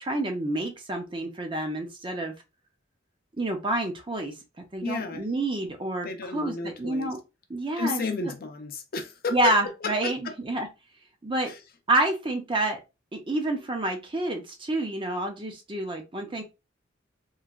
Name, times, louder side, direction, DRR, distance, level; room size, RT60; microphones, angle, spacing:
voice 1, 0.0-2.3 3.4-7.2 7.5-8.0 9.3-10.7 11.2-11.5 11.9-12.8 13.1-16.4, right 2 dB, 25° right, 0.6 m, -28 dB
voice 2, 4.8-5.2 6.0-7.1 7.8-9.5 9.8-10.3 11.4-11.6, left 3 dB, 50° left, 0.6 m, -32 dB
3.1 x 2.5 x 2.4 m
head